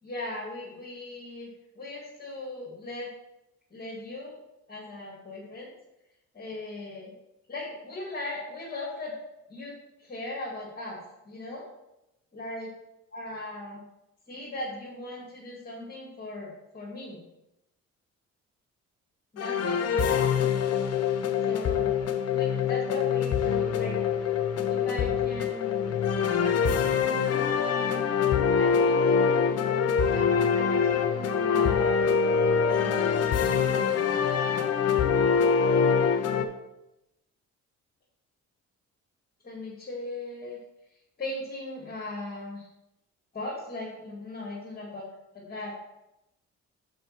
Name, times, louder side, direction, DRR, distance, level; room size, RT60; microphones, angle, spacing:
voice 1, 0.0-1.5 1.8-3.1 3.7-4.4 4.7-5.7 6.3-7.1 7.5-9.2 9.5-9.7 10.0-11.7 12.3-12.7 13.1-13.8 14.3-17.2 19.3-20.3 21.5-22.0 22.3-24.4 24.7-25.9 26.4-26.9 27.2-28.1 28.5-29.6 30.1-32.2 32.7-33.1 33.4-34.7 39.4-40.6 41.2-42.7 43.3-45.0 45.3-45.7, left 2 dB, 30° left, -5 dB, 2.2 m, -38 dB
sound 1, 19.4-36.4, left 6 dB, 55° left, 0.8 m, -24 dB
5.5 x 5.1 x 5.9 m, 0.91 s
cardioid pair, 90°, 30 cm